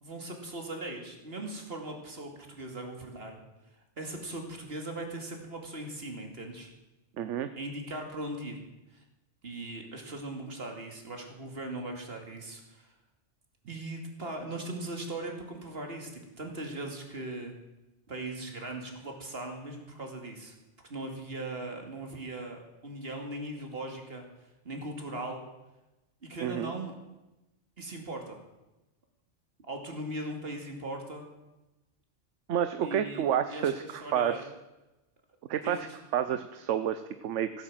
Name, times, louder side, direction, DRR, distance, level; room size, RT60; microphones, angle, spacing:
voice 1, 0.0-3.4 4.0-6.7 7.5-8.6 8.9-9.0 9.4-12.9 13.7-17.5 18.1-20.5 20.9-24.3 24.6-25.5 26.2-26.9 27.8-28.4 29.7-31.3 32.8-34.4 35.6-36.0, right 2 dB, 50° right, 3 dB, 2.6 m, -39 dB
voice 2, 7.2-7.5 26.4-26.7 32.5-34.4 35.5-35.9 36.1-37.6, right 9 dB, 75° right, 11 dB, 1.0 m, -29 dB
16.0 x 9.1 x 7.7 m, 1.0 s
omnidirectional pair, 1.3 m